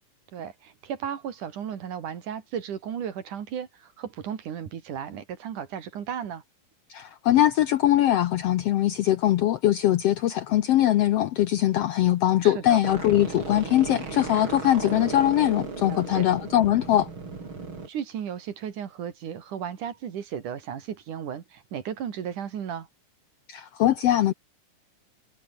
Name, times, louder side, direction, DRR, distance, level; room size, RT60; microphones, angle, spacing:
voice 1, 0.3-6.4 12.4-12.8 15.9-16.3 17.9-22.9, right 8 dB, 75° right, 3.7 m, -35 dB
voice 2, 6.9-17.1 23.5-24.3, left 13 dB, 75° left, 1.4 m, -22 dB
sound 1, 12.8-17.9, right 4 dB, 40° right, 4.7 m, -35 dB
omnidirectional pair, 3.6 m